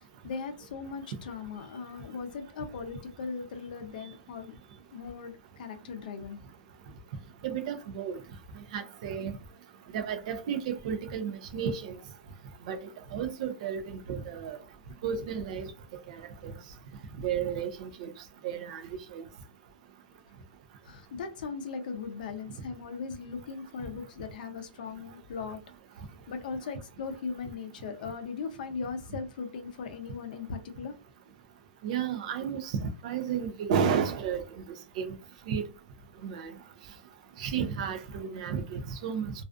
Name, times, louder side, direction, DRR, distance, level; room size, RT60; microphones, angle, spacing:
voice 1, 0.2-4.5 4.9-5.3 5.6-6.4 20.9-25.6 26.3-30.9, left 5 dB, 50° left, 0.5 m, -38 dB
voice 2, 7.4-8.2 8.7-9.3 9.9-12.0 12.6-12.8 13.1-14.6 15.0-15.7 16.1-16.5 17.2-18.1 18.4-18.8 19.1-19.2 31.8-34.4 35.0-35.2 35.5-35.6 36.2-36.5 37.4-39.3, right 7 dB, 40° right, 0.4 m, -32 dB
2.4 x 2.3 x 2.4 m
hypercardioid pair, 165°, 6 cm